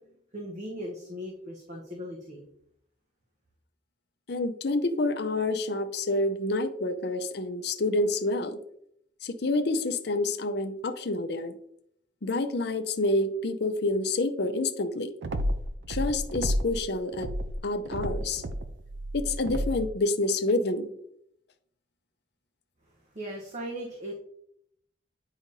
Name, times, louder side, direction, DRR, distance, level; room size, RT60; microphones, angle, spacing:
voice 1, 0.3-2.4 23.1-24.1, equal, 40° right, -1 dB, 1.0 m, -38 dB
voice 2, 4.3-8.6 9.2-11.6 12.2-15.1 15.9-17.3 17.6-18.4 19.1-20.9, left 2 dB, 60° left, 8 dB, 0.6 m, -28 dB
sound 1, 15.2-16.8 17.1-19.9, equal, 75° right, 0.6 m, -31 dB
8.9 x 4.9 x 2.7 m, 0.72 s
head